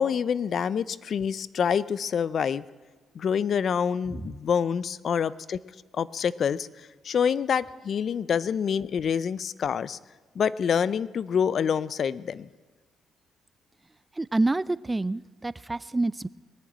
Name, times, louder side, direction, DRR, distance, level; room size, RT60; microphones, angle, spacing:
voice 1, 0.0-2.6 3.2-5.6 5.9-6.7 7.0-10.0 10.4-12.5, left 7 dB, 55° left, 19 dB, 0.4 m, -26 dB
voice 2, 14.2-16.3, right 2 dB, 15° right, 19 dB, 0.4 m, -27 dB
21.5 x 7.3 x 8.7 m, 1.4 s
cardioid pair, 90°, 0 cm